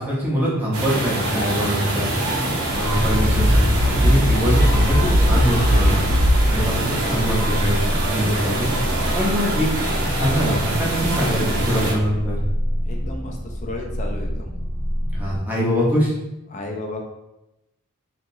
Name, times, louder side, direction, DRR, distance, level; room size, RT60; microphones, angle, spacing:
voice 1, 0.0-2.1 2.7-6.0 6.5-8.7 9.1-12.4 15.1-16.1, equal, 10° right, -6 dB, 0.7 m, -23 dB
sound 1, 0.7-11.9, right 2 dB, 70° right, 0.6 m, -25 dB
sound 2, 2.7-15.4, equal, 40° right, 0.8 m, -27 dB
sound 3, 3.1-6.6, equal, 70° left, 1.3 m, -18 dB
voice 2, 12.9-14.5 16.5-17.0, left 2 dB, 35° left, 1 dB, 0.4 m, -33 dB
2.9 x 2.8 x 2.6 m, 0.94 s
head